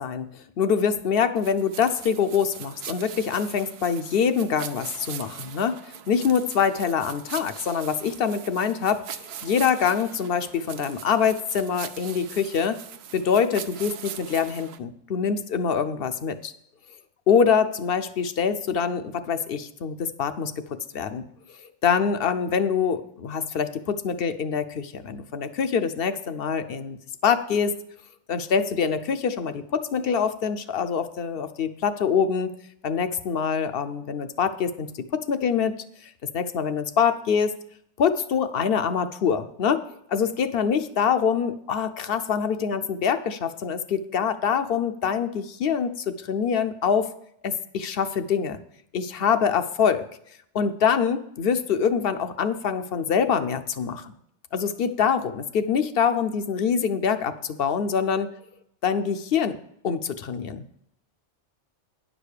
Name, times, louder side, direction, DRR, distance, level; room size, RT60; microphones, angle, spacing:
voice 1, 0.0-5.8 6.1-12.8 13.1-16.5 17.3-20.6 20.9-21.3 21.8-27.8 28.3-32.5 32.8-35.8 36.3-37.5 38.0-39.8 40.1-47.1 47.4-48.6 48.9-50.0 50.5-54.1 54.5-58.3 58.8-59.6 59.8-60.6, left 7 dB, 60° left, 10 dB, 0.8 m, -25 dB
sound 1, 1.4-14.8, right 9 dB, 70° right, 0.9 m, -41 dB
10.0 x 5.1 x 6.6 m, 0.72 s
omnidirectional pair, 1.2 m